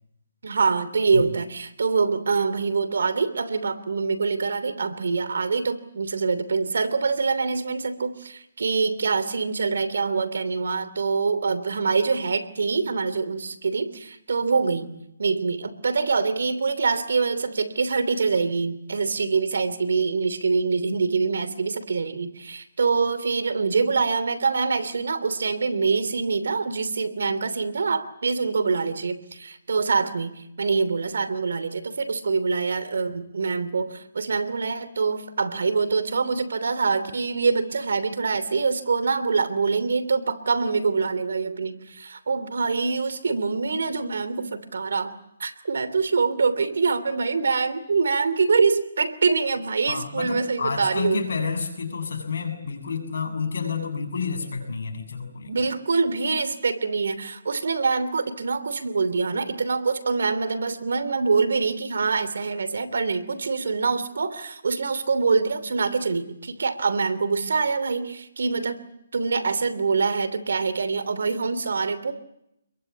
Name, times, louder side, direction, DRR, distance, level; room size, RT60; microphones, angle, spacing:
voice 1, 0.4-30.3 30.6-45.1 45.4-51.3 55.5-68.8 69.1-72.1, right 4 dB, 80° right, 12 dB, 3.0 m, -25 dB
voice 2, 49.9-55.7, left 5 dB, 75° left, 6 dB, 7.2 m, -29 dB
27.0 x 22.5 x 8.6 m, 0.80 s
hypercardioid pair, 155°, 0 cm